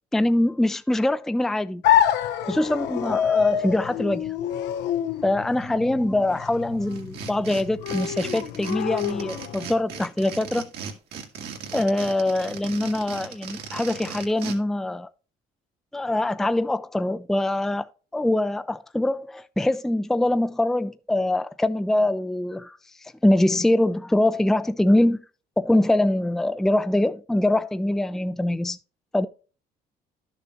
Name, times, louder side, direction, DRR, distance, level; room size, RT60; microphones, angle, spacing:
voice 1, 0.1-1.8 2.4-4.3 5.2-10.7 11.7-15.1 15.9-25.2 25.6-28.8 29.1-29.3, left 1 dB, ahead, 0.4 m, -23 dB
sound 1, 1.8-9.8, left 9 dB, 85° left, 0.8 m, -27 dB
sound 2, 6.9-14.6, right 7 dB, 75° right, 2.0 m, -37 dB
11.5 x 6.8 x 2.9 m
cardioid pair, 110°, 17 cm